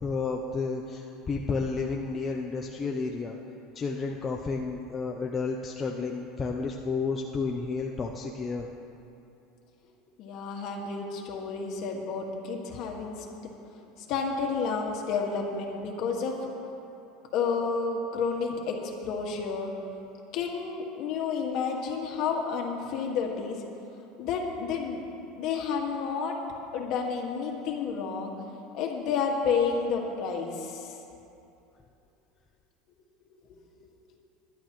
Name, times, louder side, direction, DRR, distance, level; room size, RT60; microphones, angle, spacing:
voice 1, 0.0-3.4 3.7-8.7, left 4 dB, 20° left, 0 dB, 0.6 m, -31 dB
voice 2, 10.2-13.3 14.0-16.5 17.3-19.7 20.3-23.6 24.2-25.0 25.4-26.4 26.7-28.3 28.7-30.9, left 5 dB, 50° left, 0 dB, 1.8 m, -30 dB
20.5 x 11.0 x 3.1 m, 2.8 s
supercardioid pair, 150°, 0 cm